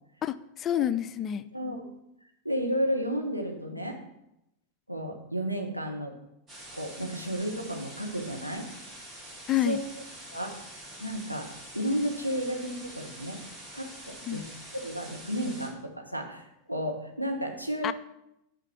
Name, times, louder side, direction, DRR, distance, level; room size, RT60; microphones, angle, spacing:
voice 1, 0.2-1.4 9.5-9.8 14.3-14.4 17.8-17.9, left 11 dB, 30° left, 15 dB, 0.3 m, -28 dB
voice 2, 1.5-1.8 2.4-4.0 4.9-6.1 6.7-8.7 9.6-9.8 10.3-10.5 11.0-11.5 11.7-13.4 13.7-14.4 14.7-17.9, equal, 90° right, 2 dB, 1.1 m, -32 dB
sound 1, 6.5-15.7, right 1 dB, 25° right, 2.1 m, -46 dB
5.7 x 5.7 x 5.8 m, 0.84 s
figure-of-eight pair, 90°, 0 cm